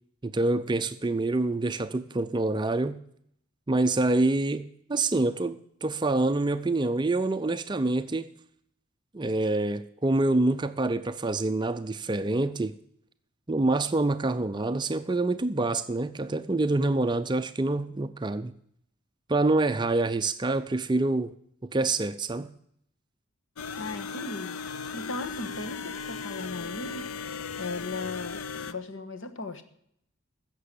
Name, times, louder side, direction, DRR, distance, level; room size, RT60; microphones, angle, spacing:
voice 1, 0.2-3.0 3.7-8.3 9.1-12.7 13.5-18.6 19.3-21.3 21.7-22.5, right 2 dB, 20° right, 0.4 m, -26 dB
sound 1, 23.6-28.7, left 5 dB, 80° left, 0.6 m, -37 dB
voice 2, 23.8-24.6 24.9-27.1 27.6-29.6, left 3 dB, 60° left, 1.4 m, -37 dB
15.0 x 6.8 x 8.4 m
head